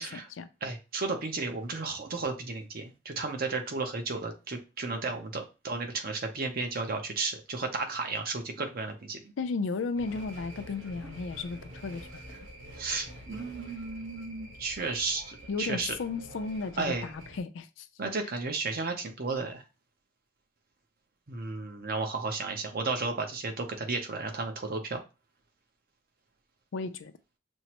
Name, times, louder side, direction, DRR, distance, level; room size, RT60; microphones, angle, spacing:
voice 1, 0.0-0.5 4.9-5.0 9.4-12.2 15.5-17.9 26.7-27.1, left 4 dB, 75° left, 0.4 m, -34 dB
voice 2, 0.6-9.3 12.8-15.9 16.8-17.1 18.0-19.6 21.3-25.0, right 3 dB, 50° right, 0.7 m, -33 dB
sound 1, 9.9-17.4, equal, 85° right, 1.2 m, -47 dB
6.1 x 2.0 x 2.9 m
head